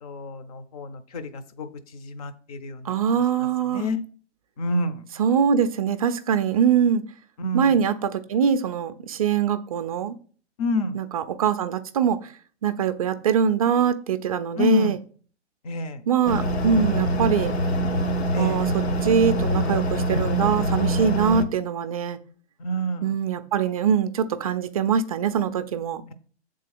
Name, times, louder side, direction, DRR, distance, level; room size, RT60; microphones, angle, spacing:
voice 1, 0.0-1.7 1.9-2.9 3.7-4.0 4.6-5.0 7.4-7.7 10.6-11.0 14.6-14.9 15.6-16.0 18.3-18.7 22.6-23.2, left 1 dB, 30° left, 0.8 m, -28 dB
voice 2, 2.8-3.8 5.2-7.0 7.5-10.2 10.9-12.3 12.6-15.0 16.1-17.5 18.4-22.2 23.0-26.0, right 7 dB, 30° right, 0.5 m, -23 dB
sound 1, 16.3-21.4, right 1 dB, 65° left, 1.1 m, -24 dB
8.2 x 3.8 x 6.0 m
figure-of-eight pair, 125°, 35 cm